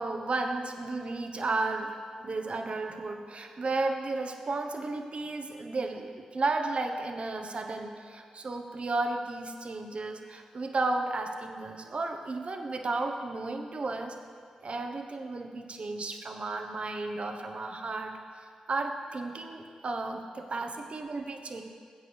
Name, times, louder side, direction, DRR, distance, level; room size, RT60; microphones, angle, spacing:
voice 1, 0.0-14.1 14.6-18.1 18.7-21.6, right 3 dB, 50° right, 4 dB, 1.0 m, -33 dB
16.5 x 7.8 x 3.4 m, 2.1 s
supercardioid pair, 40°, 2 cm